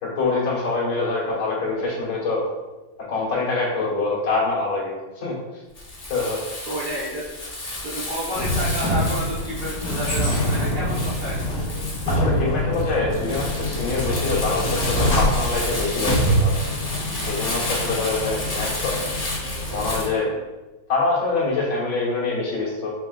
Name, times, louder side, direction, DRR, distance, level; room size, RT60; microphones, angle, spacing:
voice 1, 0.0-2.4 3.1-5.4 6.1-6.4 12.1-16.6 17.3-19.1 19.7-20.3 20.9-22.9, left 3 dB, 80° left, -6 dB, 2.2 m, -25 dB
Crumpling crinkling, 5.7-20.1, left 1 dB, 40° left, 0.5 m, -31 dB
voice 2, 6.7-7.3 7.8-11.5, right 1 dB, 65° right, -7 dB, 0.4 m, -30 dB
sound 1, 8.3-20.1, equal, 55° left, 1.8 m, -25 dB
6.2 x 3.8 x 2.2 m, 1.1 s
omnidirectional pair, 2.1 m